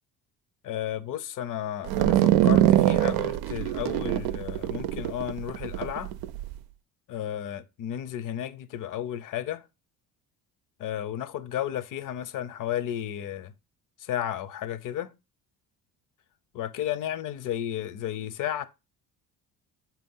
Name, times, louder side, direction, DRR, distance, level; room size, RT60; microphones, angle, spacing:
voice 1, 0.6-6.1 7.1-9.6 10.8-13.5 14.0-15.1 16.5-18.7, left 11 dB, 60° left, 0.8 m, -33 dB
sound 1, 1.9-6.5, right 13 dB, 80° right, 0.5 m, -23 dB
7.3 x 3.0 x 5.4 m
cardioid pair, 115°, 36 cm